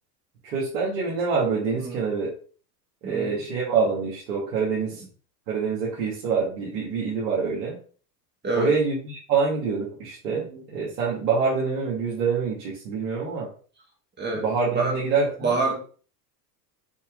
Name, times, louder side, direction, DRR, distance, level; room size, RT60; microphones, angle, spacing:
voice 1, 0.4-2.3 3.0-5.0 5.5-7.8 8.5-10.5 10.7-13.5 14.3-15.5, right 5 dB, 75° right, -6 dB, 2.8 m, -26 dB
voice 2, 3.0-3.4 8.4-8.7 10.3-10.6 14.2-14.4 14.7-15.0 15.4-15.8, right 3 dB, 20° right, -1 dB, 2.1 m, -27 dB
7.2 x 4.5 x 4.0 m, 0.41 s
hypercardioid pair, 105°, 48 cm